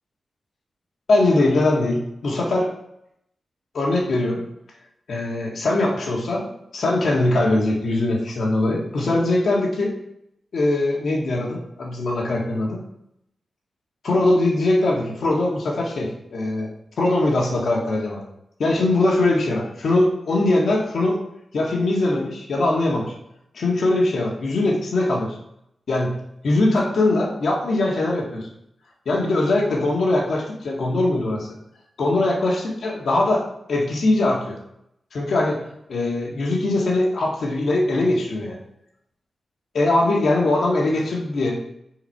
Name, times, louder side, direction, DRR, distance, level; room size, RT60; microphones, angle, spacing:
voice 1, 1.1-2.7 3.7-4.4 5.1-6.5 6.7-9.9 10.5-12.8 14.0-16.7 17.0-18.2 18.6-21.2 21.5-23.1 23.5-25.4 25.9-28.5 29.1-31.5 32.0-34.6 35.1-35.6 35.9-38.6 39.7-41.6, left 2 dB, 75° left, -2 dB, 1.7 m, -21 dB
6.5 x 4.7 x 4.5 m, 0.79 s
cardioid pair, 75°, 0 cm